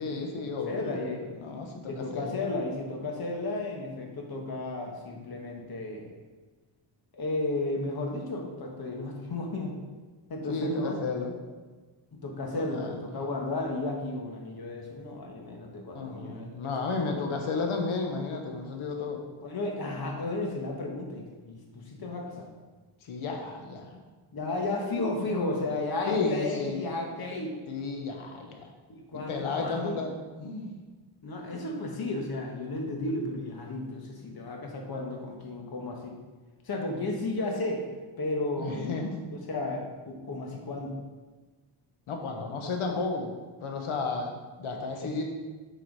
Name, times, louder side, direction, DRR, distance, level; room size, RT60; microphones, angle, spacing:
voice 1, 0.0-2.4 10.5-11.3 12.5-13.0 15.9-19.2 23.0-24.0 26.1-26.9 27.7-28.7 29.1-30.7 38.6-39.2 42.1-45.2, left 4 dB, 80° left, 3 dB, 1.3 m, -33 dB
voice 2, 0.7-1.2 1.9-6.1 7.1-9.8 10.3-11.0 12.1-16.7 19.4-22.5 24.3-27.6 28.9-30.0 31.2-36.1 36.6-37.8 38.2-38.9 39.3-41.0 45.0-45.1, left 2 dB, 50° left, 1 dB, 1.5 m, -33 dB
8.0 x 4.8 x 4.7 m, 1.3 s
wide cardioid pair, 135°, 48 cm